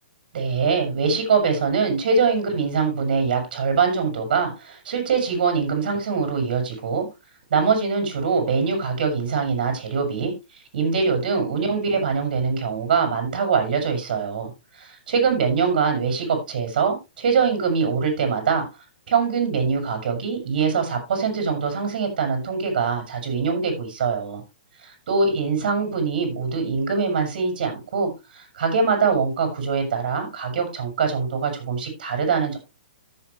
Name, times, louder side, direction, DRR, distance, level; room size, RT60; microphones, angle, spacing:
voice 1, 0.3-7.0 7.5-10.3 10.7-14.5 14.8-18.7 19.1-24.4 25.1-32.6, right 5 dB, 60° right, 5.9 m, -23 dB
14.0 x 7.5 x 3.2 m
hypercardioid pair, 145°, 5 cm